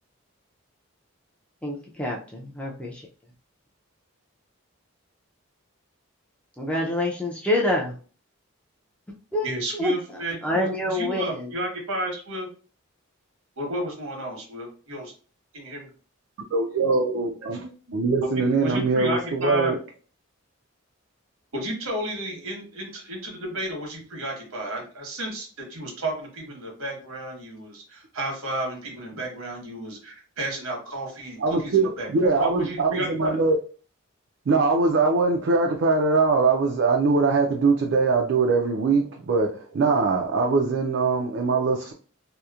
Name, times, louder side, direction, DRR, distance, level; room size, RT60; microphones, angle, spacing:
voice 1, 1.6-3.1 6.6-8.0 9.3-9.9 10.4-11.5, left 1 dB, 5° left, 0.4 m, -27 dB
voice 2, 9.4-12.5 13.6-15.1 15.5-15.9 17.4-18.0 18.2-19.7 21.5-33.4, right 1 dB, 80° right, 1.1 m, -32 dB
voice 3, 16.5-17.6 17.9-19.8 31.4-33.6 34.5-41.9, right 4 dB, 60° right, 0.4 m, -22 dB
2.8 x 2.1 x 2.3 m
head